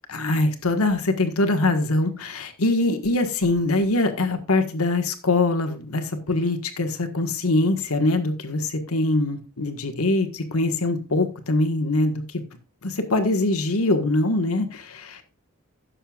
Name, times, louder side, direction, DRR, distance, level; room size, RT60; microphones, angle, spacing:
voice 1, 0.1-12.4 12.8-15.3, left 2 dB, 85° left, 1.6 m, -23 dB
16.5 x 6.8 x 2.4 m
head